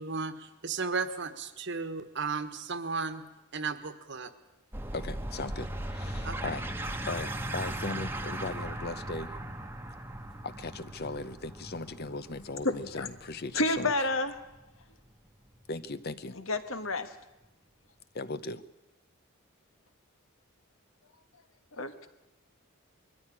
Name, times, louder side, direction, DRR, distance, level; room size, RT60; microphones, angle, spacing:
voice 1, 0.0-3.2 3.5-4.3 6.2-6.5, right 4 dB, 55° right, 1.4 m, -34 dB
sound 1, 4.7-15.8, right 1 dB, 10° right, 1.2 m, -38 dB
voice 2, 4.9-6.7 7.1-9.3 10.4-14.1 15.7-16.4 18.1-18.6, left 3 dB, 50° left, 0.7 m, -38 dB
voice 3, 12.6-13.1 13.5-14.4 16.3-17.1 21.8-22.1, left 2 dB, 70° left, 1.6 m, -30 dB
21.5 x 14.5 x 9.9 m
head